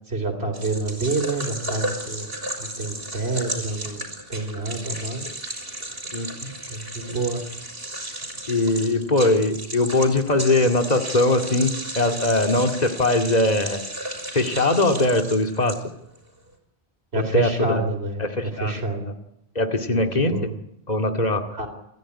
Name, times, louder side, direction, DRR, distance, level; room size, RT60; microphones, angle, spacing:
voice 1, 0.1-2.3 2.6-4.0 4.3-5.2 6.4-7.4 17.1-19.1 19.9-20.5 21.5-21.7, right 3 dB, 85° right, 4 dB, 4.0 m, -28 dB
sound 1, 0.5-16.2, right 1 dB, 70° right, 5.9 m, -34 dB
voice 2, 8.5-13.9 14.3-15.8 17.1-17.8 18.2-19.1 19.6-20.5 20.9-21.4, left 2 dB, 40° left, 5 dB, 2.3 m, -21 dB
28.0 x 15.0 x 9.8 m, 0.82 s
omnidirectional pair, 1.0 m